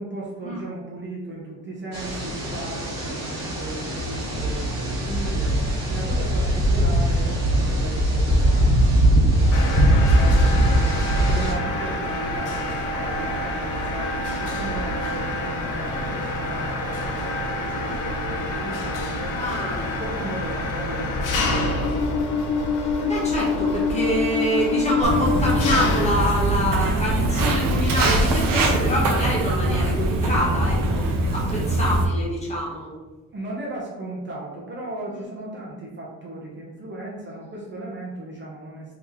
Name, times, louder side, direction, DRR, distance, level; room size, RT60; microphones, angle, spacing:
voice 1, 0.0-5.6 5.9-19.4 19.8-22.4 31.8-32.0 33.3-39.0, right 2 dB, 35° right, -4 dB, 0.7 m, -36 dB
sound 1, 1.9-11.5, right 1 dB, 50° right, 1.2 m, -20 dB
Mechanisms, 9.5-27.6, left 2 dB, 65° left, 0.7 m, -26 dB
voice 2, 19.4-19.9 22.8-32.9, equal, 20° left, -5 dB, 1.1 m, -26 dB
Walk footsteps, 25.0-32.0, right 2 dB, 75° right, 0.7 m, -22 dB
2.9 x 2.9 x 3.6 m, 1.2 s
cardioid pair, 130°, 33 cm